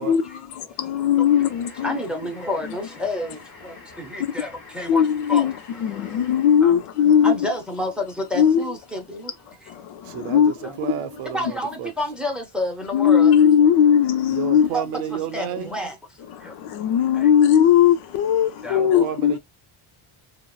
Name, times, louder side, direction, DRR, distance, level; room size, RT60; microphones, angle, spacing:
voice 1, 0.0-2.0 2.6-2.7 4.2-4.3 4.9-7.5 8.3-8.7 9.7-11.0 12.9-14.7 16.3-19.4, left 8 dB, 85° left, 0.6 m, -19 dB
sound 1, 1.3-6.8, left 4 dB, 40° left, 0.8 m, -46 dB
voice 2, 1.8-5.5 5.9-6.3 6.6-6.8 7.2-9.3 9.6-9.7 10.6-10.7 11.3-13.3 14.7-14.8 15.3-15.9 16.4-16.6 17.1-17.3 18.6-19.1, left 1 dB, ahead, 0.5 m, -30 dB
voice 3, 10.0-11.9 14.3-15.7 18.6-19.4, right 11 dB, 90° right, 0.7 m, -31 dB
2.9 x 2.0 x 2.3 m
cardioid pair, 130°, 49 cm